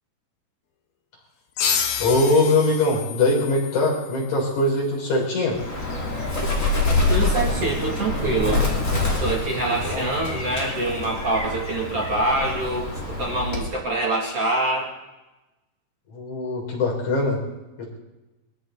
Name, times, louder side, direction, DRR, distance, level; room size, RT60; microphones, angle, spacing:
sound 1, 1.6-4.8, left 7 dB, 90° left, 3.3 m, -29 dB
voice 1, 2.0-5.6 9.8-10.1 16.1-17.4 17.8-17.9, left 2 dB, 55° left, -1 dB, 5.2 m, -22 dB
Bird, 5.5-13.8, left 2 dB, 20° left, 3.2 m, -26 dB
voice 2, 7.1-8.7 9.2-12.9 13.2-14.9, right 2 dB, 45° right, -3 dB, 3.1 m, -25 dB
23.0 x 14.0 x 3.9 m, 1.0 s
omnidirectional pair, 4.3 m